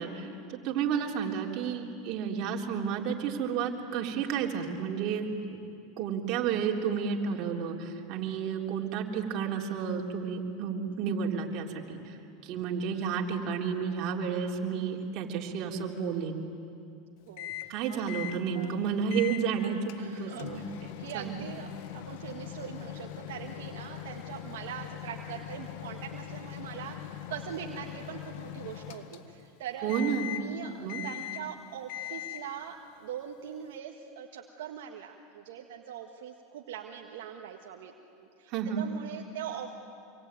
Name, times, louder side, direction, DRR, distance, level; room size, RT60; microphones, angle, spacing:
voice 1, 0.0-5.6 6.0-12.2 12.4-16.5 17.7-20.6 21.1-21.4 29.8-30.4 30.8-31.0 38.5-38.8, right 6 dB, 55° right, 0 dB, 3.6 m, -31 dB
voice 2, 17.3-18.1 18.5-18.8 20.0-38.5 38.8-39.7, right 9 dB, 75° right, 2 dB, 1.7 m, -42 dB
Microwave oven, 17.4-17.8 18.1-18.4 19.1-19.5 19.9-29.5 29.9-30.5 30.9-31.5 31.9-32.5, left 12 dB, 65° left, 1.5 m, -41 dB
26.5 x 24.0 x 9.2 m, 2.5 s
hypercardioid pair, 110°, 0 cm